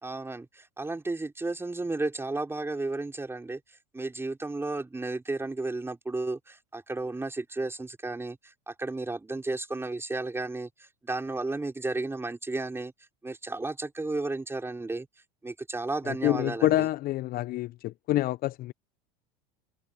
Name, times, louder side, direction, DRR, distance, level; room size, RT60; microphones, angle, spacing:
voice 1, 0.0-3.6 3.9-12.9 13.2-15.1 15.4-16.9, right 2 dB, 10° right, 4.6 m, -33 dB
voice 2, 16.0-18.7, left 15 dB, 45° left, 0.6 m, -27 dB
hypercardioid pair, 95°, 21 cm